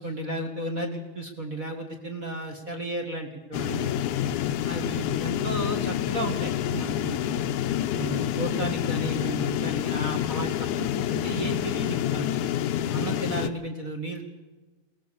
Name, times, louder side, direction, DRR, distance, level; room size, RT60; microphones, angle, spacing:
voice 1, 0.0-3.9 4.7-7.6 8.0-12.4 12.9-14.2, right 2 dB, 30° right, 4 dB, 1.8 m, -34 dB
sound 1, 3.5-13.5, left 11 dB, 75° left, 2.2 m, -28 dB
22.0 x 18.0 x 6.9 m, 1.2 s
omnidirectional pair, 3.8 m